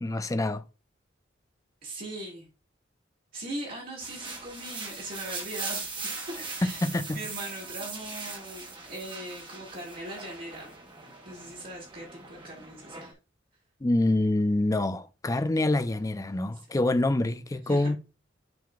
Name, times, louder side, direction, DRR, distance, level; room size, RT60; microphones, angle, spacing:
voice 1, 0.0-0.6 6.8-7.2 13.8-18.0, left 2 dB, 15° left, 0.4 m, -26 dB
voice 2, 1.8-2.5 3.3-5.9 6.6-6.8 7.1-10.7 11.0-13.2 17.7-17.9, right 1 dB, 50° right, 2.1 m, -40 dB
sound 1, 4.0-13.1, right 4 dB, 25° right, 1.4 m, -40 dB
10.5 x 3.7 x 2.4 m
head